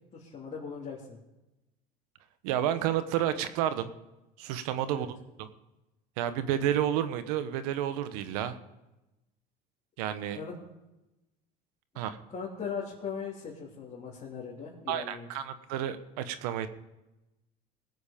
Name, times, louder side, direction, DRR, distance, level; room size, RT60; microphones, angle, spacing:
voice 1, 0.1-1.2 4.9-5.1 10.3-10.5 12.3-15.3, left 6 dB, 30° left, -5 dB, 3.2 m, -39 dB
voice 2, 2.4-3.9 4.4-5.5 6.2-8.6 10.0-10.4 11.9-12.2 14.9-16.7, right 11 dB, 85° right, 12 dB, 1.2 m, -30 dB
20.0 x 8.2 x 5.2 m, 0.97 s
supercardioid pair, 100°, 19 cm